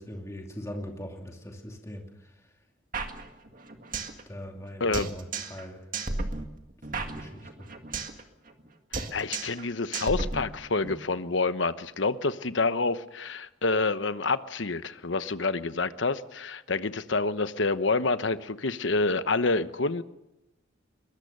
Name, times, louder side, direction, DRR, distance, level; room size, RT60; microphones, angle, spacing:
voice 1, 0.0-2.4 4.3-5.9 6.9-7.7, equal, 15° left, 2 dB, 2.7 m, -41 dB
sound 1, 2.9-4.2 4.5-4.6 4.9-5.7 5.9-8.2 8.5-8.7 8.9-9.7 9.9-10.9, right 3 dB, 45° right, 2.0 m, -34 dB
voice 2, 9.1-20.0, left 3 dB, 70° left, 12 dB, 1.0 m, -28 dB
22.0 x 21.0 x 6.8 m, 0.91 s
head